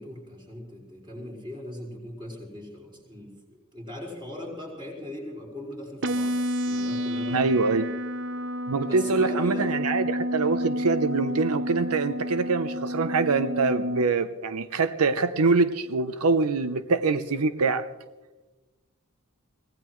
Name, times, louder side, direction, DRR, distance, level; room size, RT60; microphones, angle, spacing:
voice 1, 0.0-7.8 8.8-9.7, left 1 dB, 20° right, -3 dB, 5.2 m, -39 dB
sound 1, 6.0-14.0, equal, 55° right, 0.6 m, -30 dB
voice 2, 7.3-7.8 8.7-17.9, right 4 dB, 85° right, 11 dB, 0.7 m, -24 dB
24.5 x 18.0 x 3.2 m, 1.1 s
head